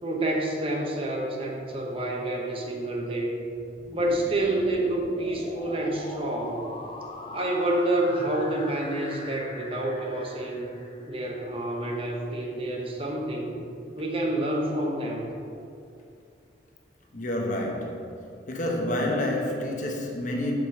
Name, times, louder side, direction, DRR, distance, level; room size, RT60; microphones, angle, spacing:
voice 1, 0.0-3.4 3.9-6.7 7.3-10.7 11.1-13.5 14.0-15.3, right 1 dB, 30° right, -1 dB, 0.9 m, -28 dB
sound 1, 3.7-11.5, left 2 dB, 25° left, 0.5 m, -42 dB
voice 2, 17.1-18.1 18.5-20.5, left 1 dB, 45° left, 0 dB, 0.9 m, -28 dB
5.1 x 5.0 x 6.1 m, 2.6 s
head